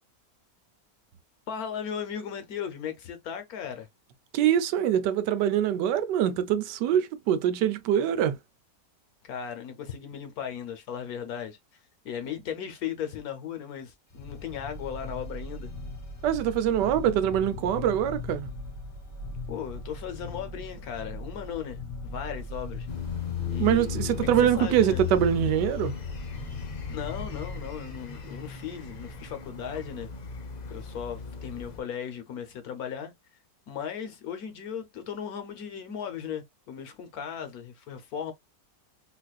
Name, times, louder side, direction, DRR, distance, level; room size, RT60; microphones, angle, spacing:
voice 1, 1.5-3.9 9.2-11.6 12.0-15.7 19.5-22.9 23.5-23.9 24.2-25.0 26.9-30.1 30.7-33.1 33.7-38.3, left 8 dB, 65° left, 1.2 m, -37 dB
voice 2, 4.3-8.3 16.2-18.5 23.6-25.9, right 10 dB, 80° right, 1.2 m, -24 dB
sound 1, 14.1-27.8, left 2 dB, 15° left, 0.7 m, -39 dB
sound 2, 22.9-31.8, left 8 dB, 80° left, 0.3 m, -36 dB
4.0 x 2.5 x 2.3 m
omnidirectional pair, 1.8 m